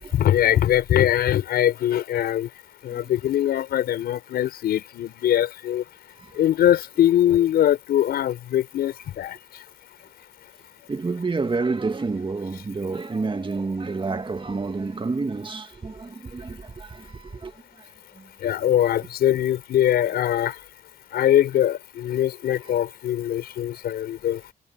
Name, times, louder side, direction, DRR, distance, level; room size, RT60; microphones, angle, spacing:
voice 1, 0.1-2.5 2.8-5.8 6.3-9.4 18.4-20.6 21.1-24.4, left 11 dB, 90° left, 5.5 m, -22 dB
voice 2, 10.9-17.5, right 3 dB, 30° right, 2.1 m, -29 dB
cardioid pair, 65°, 16 cm